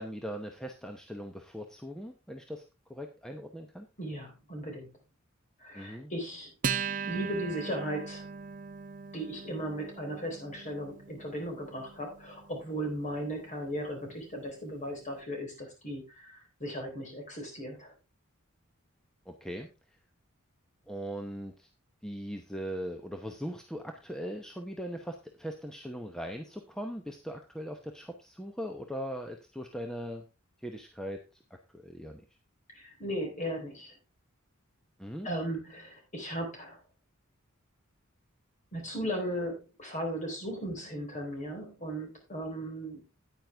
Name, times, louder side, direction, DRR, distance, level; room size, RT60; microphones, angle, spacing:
voice 1, 0.0-2.6 2.9-3.9 5.7-6.1 19.3-19.7 20.9-21.7 22.0-30.2 30.6-31.2 31.7-32.2 35.0-35.3, equal, 5° left, 4 dB, 0.8 m, -40 dB
voice 2, 4.0-4.9 5.6-6.5 7.1-8.3 9.1-17.9 32.7-33.9 35.2-36.8 38.7-43.1, equal, 35° left, 2 dB, 3.9 m, -37 dB
Acoustic guitar, 6.6-13.5, right 6 dB, 40° right, 0.6 m, -39 dB
9.4 x 9.4 x 3.4 m, 0.27 s
head